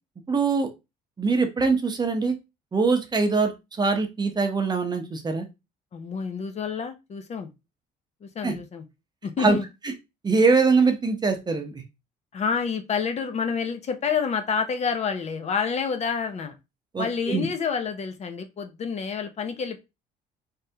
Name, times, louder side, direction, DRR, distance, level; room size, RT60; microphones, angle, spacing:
voice 1, 0.3-0.7 1.2-2.3 2.7-3.5 3.8-5.5 8.4-8.6 9.4-9.6 9.8-9.9 10.2-11.8 16.9-17.5, right 4 dB, 25° right, 5 dB, 0.8 m, -22 dB
voice 2, 5.9-7.5 8.2-8.8 9.2-9.7 12.3-16.5 17.0-19.8, left 6 dB, 40° left, 7 dB, 0.7 m, -28 dB
3.4 x 3.3 x 2.8 m, 0.24 s
cardioid pair, 110°, 17 cm